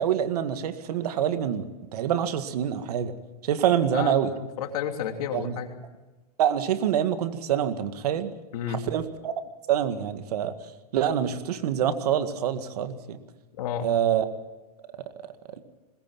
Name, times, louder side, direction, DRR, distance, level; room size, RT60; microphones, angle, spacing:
voice 1, 0.0-1.7 1.9-3.1 3.4-4.3 5.3-5.6 6.4-8.3 8.7-9.3 9.7-10.5 10.9-13.2 13.8-14.3, right 9 dB, 75° right, 9 dB, 2.0 m, -26 dB
voice 2, 3.9-5.8 8.5-8.8 13.6-13.9, left 8 dB, 70° left, 5 dB, 3.0 m, -32 dB
21.0 x 20.5 x 7.4 m, 1.1 s
supercardioid pair, 130°, 20 cm